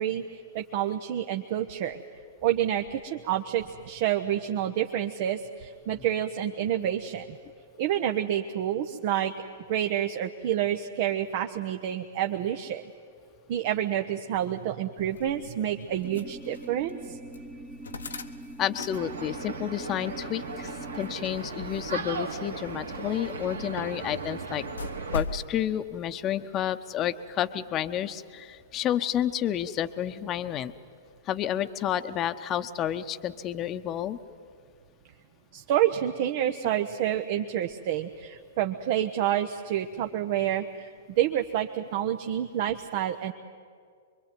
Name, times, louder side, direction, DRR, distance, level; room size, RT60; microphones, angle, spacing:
voice 1, 0.0-2.0 2.4-7.4 7.8-9.3 9.7-12.8 13.5-17.2 35.5-40.9 41.2-43.3, right 11 dB, 50° right, 6 dB, 1.0 m, -28 dB
sound 1, 15.0-25.4, left 2 dB, 80° left, 1.4 m, -42 dB
sound 2, 16.0-21.2, right 1 dB, 5° right, 0.9 m, -44 dB
voice 2, 18.6-24.7 25.1-30.7 31.3-34.2, left 11 dB, 30° left, 11 dB, 1.0 m, -30 dB
sound 3, 18.9-25.2, right 4 dB, 80° right, 2.0 m, -37 dB
25.0 x 23.0 x 9.3 m, 2.2 s
figure-of-eight pair, 110°, 0 cm